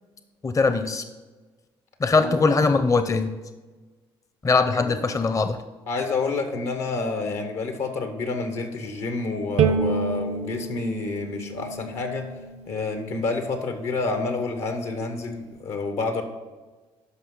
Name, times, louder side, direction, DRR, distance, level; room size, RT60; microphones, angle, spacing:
voice 1, 0.4-1.0 2.0-3.4 4.4-5.6, left 4 dB, 30° left, 9 dB, 0.6 m, -21 dB
voice 2, 4.7-5.1 5.9-12.3 12.7-16.2, left 3 dB, 75° left, 6 dB, 1.3 m, -29 dB
Bowed string instrument, 9.6-12.8, right 5 dB, 65° right, 0.6 m, -27 dB
11.5 x 5.4 x 3.9 m, 1.3 s
hypercardioid pair, 55°, 12 cm